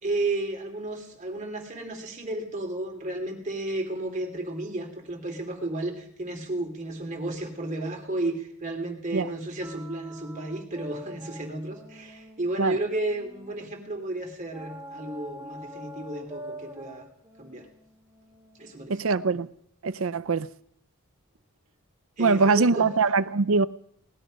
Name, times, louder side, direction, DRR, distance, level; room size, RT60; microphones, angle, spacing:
voice 1, 0.0-17.1 17.4-17.7 18.6-19.0 22.2-22.9, right 2 dB, 35° right, 2.7 m, -33 dB
sound 1, 9.6-13.8 14.5-19.3, equal, 15° right, 1.5 m, -45 dB
voice 2, 18.9-19.5 19.8-20.5 22.2-23.7, right 4 dB, 65° right, 0.6 m, -22 dB
19.0 x 12.0 x 5.2 m
head